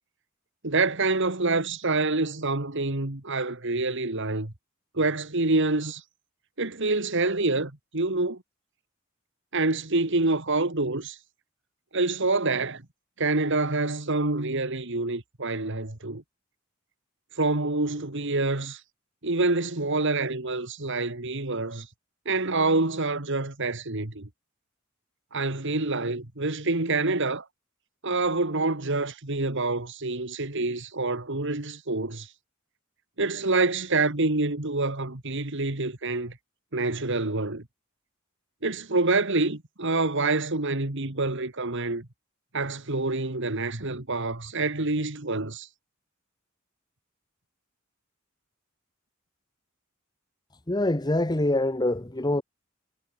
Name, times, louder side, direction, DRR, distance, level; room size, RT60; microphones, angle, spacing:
voice 1, 0.6-4.5 4.9-6.0 6.6-8.4 9.5-11.2 11.9-12.8 13.2-16.2 17.4-18.8 19.2-21.9 22.3-24.3 25.3-27.5 28.0-32.3 33.2-36.4 36.7-37.6 38.6-42.1 42.5-45.7, right 3 dB, 65° right, 2.4 m, -27 dB
voice 2, 50.7-52.4, left 1 dB, 20° left, 1.3 m, -25 dB
head